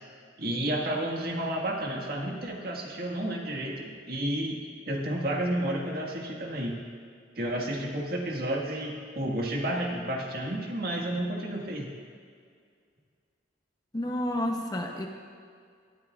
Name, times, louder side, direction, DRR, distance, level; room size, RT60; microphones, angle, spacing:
voice 1, 0.4-6.7 7.4-11.9, right 1 dB, 55° right, -1 dB, 1.8 m, -31 dB
voice 2, 13.9-15.1, left 1 dB, 20° left, 2 dB, 0.8 m, -30 dB
18.0 x 13.0 x 2.4 m, 2.2 s
head